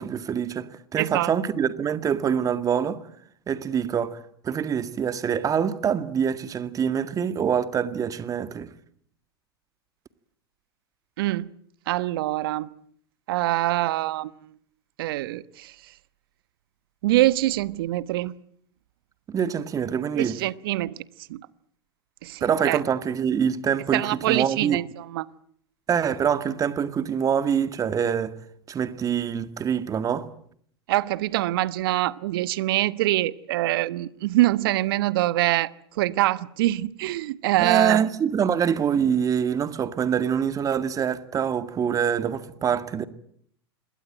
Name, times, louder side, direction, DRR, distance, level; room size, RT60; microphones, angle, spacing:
voice 1, 0.0-3.0 3.5-4.2 4.4-8.7 19.3-20.4 22.4-24.8 25.9-28.3 28.7-30.3 37.6-43.0, right 8 dB, 25° right, 2.0 m, -25 dB
voice 2, 1.0-1.3 11.2-11.5 11.9-12.7 13.3-14.3 15.0-15.7 17.0-18.3 20.1-21.0 21.3-21.5 22.2-22.8 23.9-25.3 30.9-38.0, right 16 dB, 60° right, 1.1 m, -24 dB
27.0 x 22.0 x 9.0 m
hypercardioid pair, 95°, 13 cm